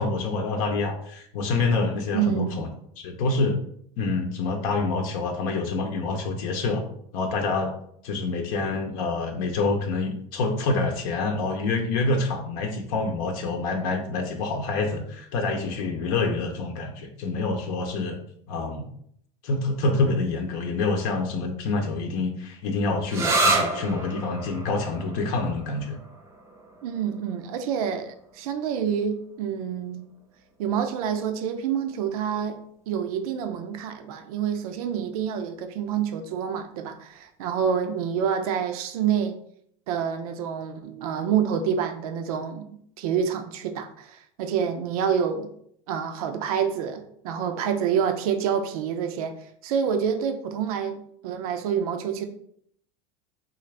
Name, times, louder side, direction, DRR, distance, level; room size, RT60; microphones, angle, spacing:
voice 1, 0.0-2.7 3.0-3.6 4.0-6.8 7.1-7.7 8.0-18.2 18.5-18.9 19.4-26.0, left 3 dB, 70° left, 0.7 m, -27 dB
voice 2, 2.1-2.6 26.8-30.1 30.6-32.6 32.9-39.4 39.9-42.7 43.0-45.5 45.9-49.3 49.6-52.2, right 8 dB, 90° right, 0.5 m, -27 dB
sound 1, 23.1-30.5, right 2 dB, 15° right, 0.6 m, -30 dB
3.8 x 2.4 x 3.2 m
supercardioid pair, 135°, 18 cm